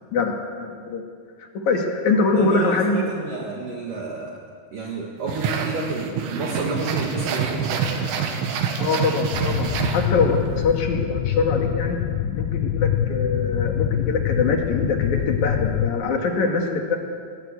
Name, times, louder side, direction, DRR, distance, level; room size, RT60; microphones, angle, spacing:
voice 1, 0.1-1.0 1.4-3.0 8.8-12.0 12.3-17.0, left 4 dB, 50° left, 2 dB, 2.6 m, -23 dB
voice 2, 2.3-4.4 4.7-7.9, right 3 dB, 55° right, -1 dB, 2.7 m, -30 dB
sound 1, 5.3-10.5, right 6 dB, 75° right, 4.2 m, -26 dB
sound 2, 9.3-15.9, left 10 dB, 85° left, 2.5 m, -25 dB
20.5 x 19.0 x 8.4 m, 2.1 s
omnidirectional pair, 5.8 m